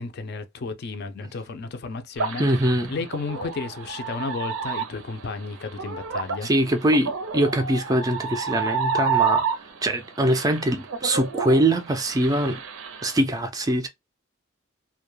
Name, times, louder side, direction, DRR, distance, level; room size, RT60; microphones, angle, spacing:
voice 1, 0.0-2.5 2.9-6.5, left 4 dB, 50° left, 0.4 m, -33 dB
sound 1, 2.2-9.9 10.3-13.2, right 5 dB, 80° right, 0.5 m, -29 dB
voice 2, 2.4-2.9 6.4-9.4 9.8-12.6 13.0-13.9, right 1 dB, 20° right, 0.3 m, -23 dB
2.2 x 2.0 x 3.0 m
head